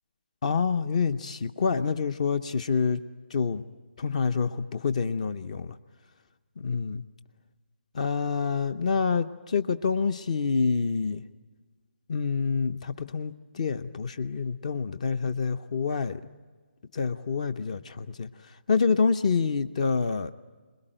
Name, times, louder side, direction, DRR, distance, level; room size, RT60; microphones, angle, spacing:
voice 1, 0.4-3.0 3.3-3.6 4.0-5.8 6.6-7.0 7.9-11.2 12.1-16.2 16.9-18.3 18.7-20.3, left 5 dB, 35° left, 13 dB, 0.7 m, -27 dB
26.5 x 21.0 x 8.9 m, 1.5 s
hypercardioid pair, 165°, 6 cm